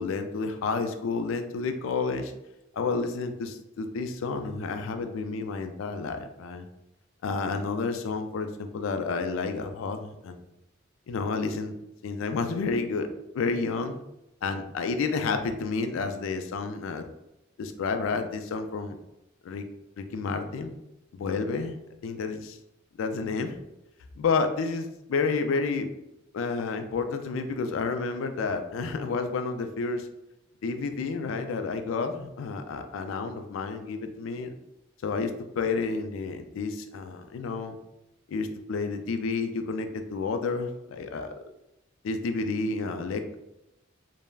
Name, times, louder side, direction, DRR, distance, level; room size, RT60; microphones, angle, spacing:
voice 1, 0.0-2.3 2.7-6.7 7.2-10.4 11.1-11.8 12.0-13.1 13.3-14.0 14.4-17.0 17.6-19.0 19.4-19.7 20.0-20.8 21.1-21.8 22.0-22.6 23.0-23.6 24.2-25.9 26.3-30.1 30.6-34.5 35.0-37.8 38.3-41.3 42.0-43.4, left 4 dB, 75° left, 7 dB, 0.3 m, -30 dB
3.3 x 2.0 x 2.3 m, 0.88 s
head